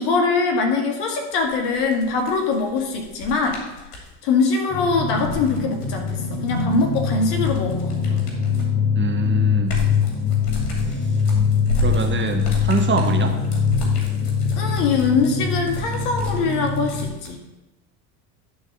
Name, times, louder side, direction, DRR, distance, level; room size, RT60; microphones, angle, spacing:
voice 1, 0.0-3.6 4.2-8.2 14.5-17.4, left 4 dB, 60° left, 3 dB, 2.0 m, -22 dB
sound 1, 1.3-4.1 5.0-8.8 9.2-17.3, left 3 dB, 80° left, 2.6 m, -32 dB
sound 2, 4.7-17.1, left 6 dB, 30° left, 3.8 m, -23 dB
voice 2, 8.9-9.9 11.8-13.4, right 5 dB, 25° right, 4 dB, 1.2 m, -25 dB
11.0 x 4.0 x 6.6 m, 1.0 s
hypercardioid pair, 85°, 45 cm